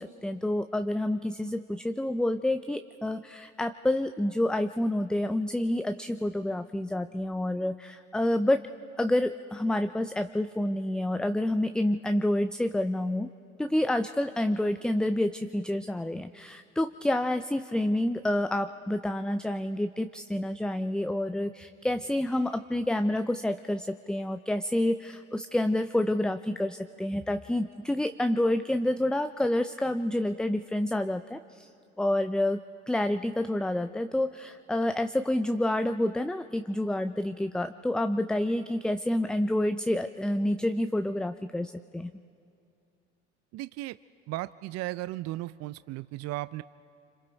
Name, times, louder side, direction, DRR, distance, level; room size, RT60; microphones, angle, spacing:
voice 1, 0.0-8.6 9.0-13.3 13.6-31.7 32.0-32.6 32.9-42.1, left 1 dB, ahead, 9 dB, 0.5 m, -28 dB
voice 2, 43.5-44.0 44.3-46.6, right 17 dB, 50° right, 16 dB, 0.5 m, -35 dB
26.5 x 26.0 x 4.0 m, 2.5 s
hypercardioid pair, 65°, 34 cm